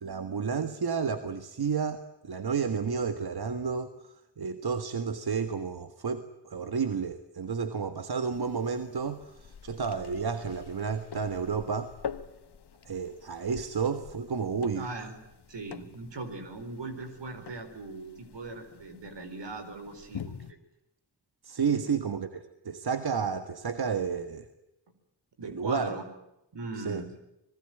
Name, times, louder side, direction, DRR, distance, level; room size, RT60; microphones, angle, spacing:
voice 1, 0.0-11.9 12.9-14.9 21.4-24.5 25.4-25.9 26.8-27.0, right 6 dB, 60° right, 9 dB, 1.8 m, -31 dB
sound 1, 8.3-20.5, left 7 dB, 65° left, 1.5 m, -46 dB
voice 2, 14.7-15.2 15.5-20.6 21.8-21.9 25.4-26.0 26.5-27.1, right 2 dB, 75° right, 8 dB, 4.6 m, -39 dB
25.5 x 20.0 x 9.2 m, 0.87 s
cardioid pair, 45°, 43 cm